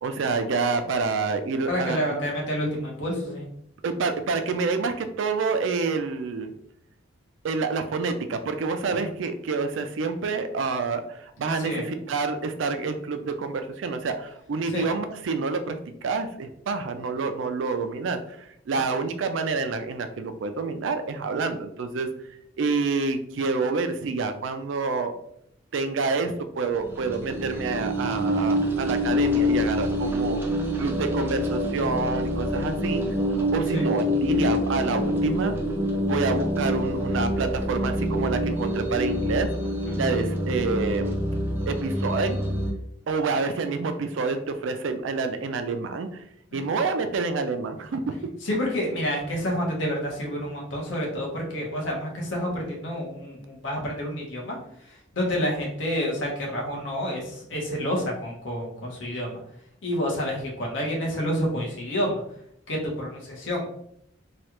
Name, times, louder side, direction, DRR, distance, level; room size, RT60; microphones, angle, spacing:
voice 1, 0.0-2.2 3.8-6.5 7.4-22.1 22.6-25.1 25.7-30.4 30.7-33.0 33.3-35.5 36.0-39.5 39.9-41.1 41.6-42.4 43.1-46.2 46.5-48.1, right 4 dB, 75° right, 8 dB, 0.4 m, -28 dB
voice 2, 1.7-3.4 8.9-9.1 11.4-11.8 14.7-14.9 33.7-33.9 39.9-40.1 46.5-46.8 48.4-54.6 55.1-59.4 59.8-62.2 62.7-63.7, equal, 70° left, -2 dB, 1.0 m, -29 dB
sound 1, 26.7-42.7, left 1 dB, 10° right, 0.4 m, -26 dB
3.1 x 2.3 x 2.9 m, 0.72 s
head